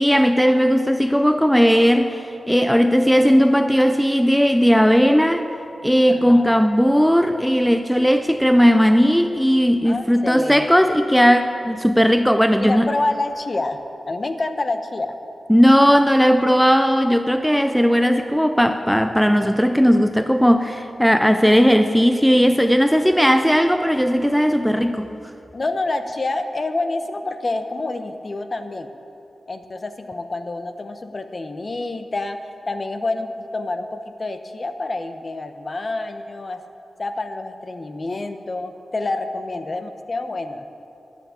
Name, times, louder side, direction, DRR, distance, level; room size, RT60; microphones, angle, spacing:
voice 1, 0.0-5.4 5.8-12.9 15.5-25.1, equal, ahead, 8 dB, 0.4 m, -17 dB
voice 2, 6.1-6.7 9.8-10.7 12.6-13.8 14.1-15.2 25.5-28.9 29.5-32.4 32.7-36.6 37.0-40.6, left 2 dB, 40° left, 8 dB, 0.8 m, -27 dB
11.5 x 8.1 x 8.6 m, 2.8 s
wide cardioid pair, 85°, 0 cm